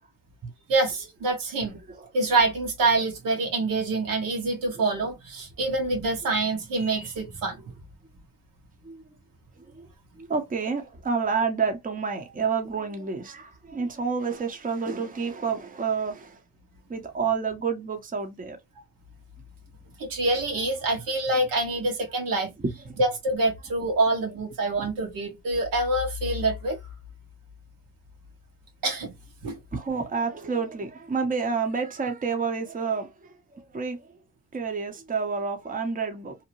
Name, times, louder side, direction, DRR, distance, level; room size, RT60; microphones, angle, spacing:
voice 1, 0.7-1.8 2.1-7.6 20.0-22.5 23.0-26.8 28.8-29.1 29.4-29.6, right 2 dB, 75° right, 1.2 m, -26 dB
voice 2, 10.2-16.4 16.9-18.6 22.9-23.0 24.8-24.9 29.7-34.0 34.5-36.4, right 5 dB, 25° right, 0.8 m, -29 dB
2.8 x 2.1 x 2.8 m
supercardioid pair, 70°, 34 cm